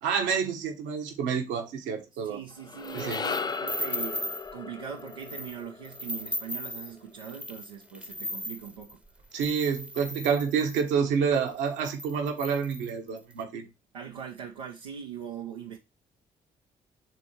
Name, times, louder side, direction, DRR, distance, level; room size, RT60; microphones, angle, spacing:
voice 1, 0.0-2.4 2.9-3.2 9.3-13.7, right 6 dB, 75° right, 1.2 m, -28 dB
voice 2, 2.1-9.0 13.9-15.8, right 8 dB, 90° right, 0.6 m, -41 dB
sound 1, 2.5-7.0, left 5 dB, 20° left, 0.4 m, -37 dB
sound 2, 2.8-4.5 5.0-5.6 5.8-10.9 11.5-11.6 11.8-13.3, left 1 dB, 5° right, 0.8 m, -37 dB
8.4 x 3.6 x 4.3 m
hypercardioid pair, 45°, 19 cm